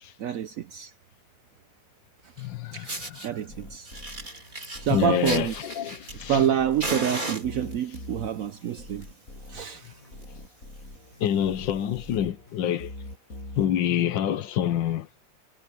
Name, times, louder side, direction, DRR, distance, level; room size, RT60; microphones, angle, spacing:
voice 1, 0.2-0.9 2.7-2.9 3.2-3.9 4.8-5.5 6.3-9.1 9.5-9.9, right 10 dB, 70° right, 0.8 m, -27 dB
voice 2, 2.4-3.3 4.9-6.4 11.2-12.9 13.6-15.1, left 10 dB, 85° left, 1.6 m, -27 dB
Fire, 2.4-2.5 2.8-3.3 3.8-6.5 6.8-8.0 8.8-9.0 9.4-9.5 9.8-9.9 10.2-10.4 11.0-11.1 12.0-12.1, right 2 dB, 25° right, 3.1 m, -35 dB
sound 1, 3.5-14.0, left 2 dB, 45° left, 7.6 m, -44 dB
omnidirectional pair, 2.0 m